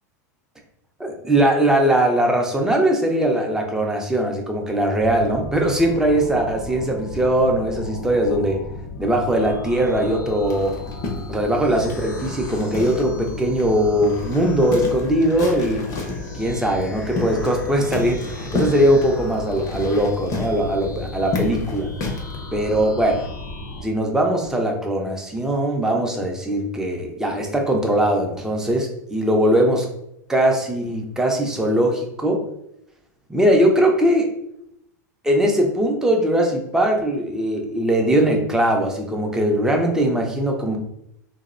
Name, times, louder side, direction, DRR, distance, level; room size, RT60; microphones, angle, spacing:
voice 1, 1.0-8.6 9.0-10.8 11.3-15.8 16.3-21.9 22.5-23.2 23.8-29.9 30.3-32.4 33.3-34.3 35.2-40.8, right 1 dB, 5° right, 1 dB, 0.5 m, -20 dB
sound 1, 5.0-23.8, left 3 dB, 75° left, 0.8 m, -35 dB
sound 2, 10.4-13.3 13.6-13.7 14.0-16.3 16.8-17.6 17.9-22.4, left 3 dB, 40° left, 0.6 m, -31 dB
2.5 x 2.0 x 2.5 m, 0.77 s
hypercardioid pair, 100°, 9 cm